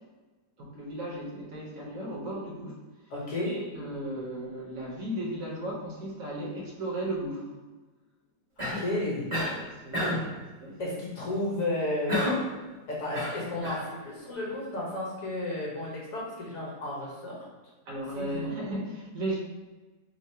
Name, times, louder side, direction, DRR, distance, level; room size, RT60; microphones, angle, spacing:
voice 1, 0.6-2.8 3.4-7.6 9.6-10.2 10.6-10.8 17.9-19.4, right 1 dB, 60° right, -4 dB, 1.3 m, -35 dB
voice 2, 3.1-3.5 8.6-9.3 10.0-10.1 10.8-12.3 12.9-17.4 18.1-18.5, left 1 dB, 55° left, -5 dB, 1.5 m, -33 dB
Cough, 8.6-8.9 9.3-9.6 9.9-10.3 12.1-12.5 13.1-13.9, left 1 dB, 25° right, 0.8 m, -30 dB
3.7 x 2.0 x 4.3 m, 1.2 s
omnidirectional pair, 1.7 m